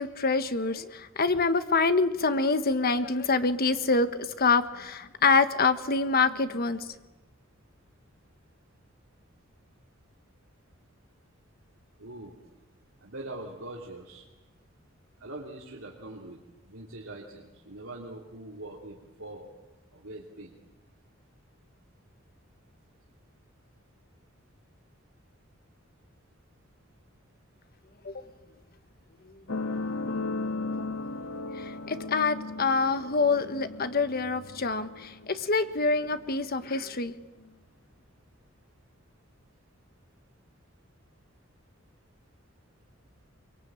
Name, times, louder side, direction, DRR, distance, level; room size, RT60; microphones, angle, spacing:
voice 1, 0.0-6.9 28.0-28.1 31.6-37.1, left 4 dB, 50° left, 10 dB, 1.4 m, -26 dB
voice 2, 12.0-12.3 13.0-14.2 15.2-16.4 16.7-19.5 19.9-20.5, right 2 dB, 80° right, -3 dB, 3.2 m, -42 dB
sound 1, 29.5-36.5 37.4-37.5, left 3 dB, 85° left, 1.5 m, -36 dB
24.5 x 23.0 x 9.0 m, 1.1 s
head